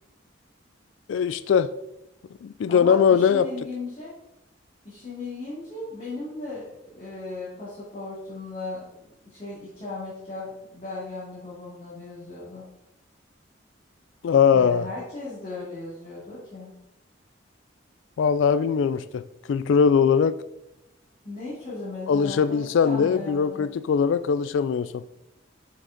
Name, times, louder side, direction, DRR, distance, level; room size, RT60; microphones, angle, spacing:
voice 1, 1.1-1.7 2.4-3.5 14.2-14.9 18.2-19.2 19.5-20.4 22.1-25.0, left 6 dB, 80° left, 14 dB, 0.3 m, -21 dB
voice 2, 2.7-4.1 4.8-6.7 6.9-8.9 9.2-12.6 14.5-16.7 21.2-23.7, left 2 dB, 35° left, -10 dB, 2.5 m, -36 dB
6.4 x 6.3 x 3.9 m, 0.88 s
head